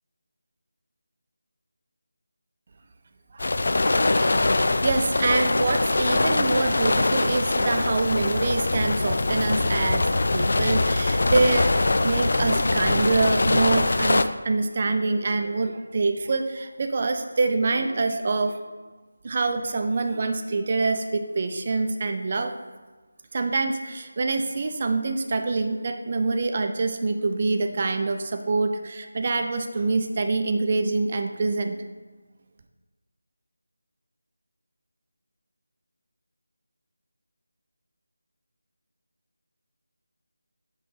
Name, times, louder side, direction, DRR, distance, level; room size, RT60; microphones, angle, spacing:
sound 1, 3.4-14.2, left 2 dB, 50° left, 0.4 m, -23 dB
voice 1, 3.9-4.5 4.8-10.1 10.3-18.6 19.2-22.5 23.3-31.8, right 3 dB, 35° right, 6 dB, 0.5 m, -25 dB
7.8 x 3.8 x 5.0 m, 1.3 s
figure-of-eight pair, 160°, 0 cm